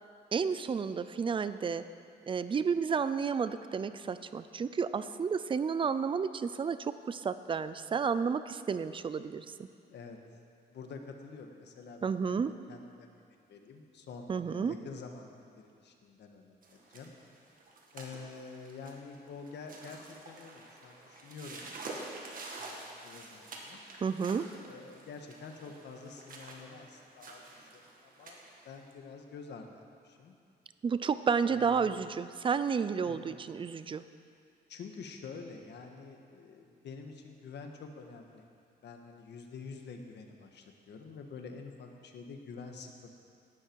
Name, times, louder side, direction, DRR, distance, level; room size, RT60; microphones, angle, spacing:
voice 1, 0.3-1.8 2.2-9.5 12.0-12.5 14.3-14.7 24.0-24.5 30.8-34.1, right 6 dB, 30° right, 13 dB, 0.5 m, -31 dB
voice 2, 10.7-17.1 17.9-21.7 22.4-22.7 23.0-23.8 24.5-30.3 31.5-32.1 33.0-33.3 34.7-38.4 38.8-43.1, left 4 dB, 75° left, 3 dB, 1.6 m, -48 dB
sound 1, 16.6-28.9, right 2 dB, 50° right, 1.9 m, -48 dB
18.0 x 12.5 x 4.7 m, 2.4 s
wide cardioid pair, 165°, 18 cm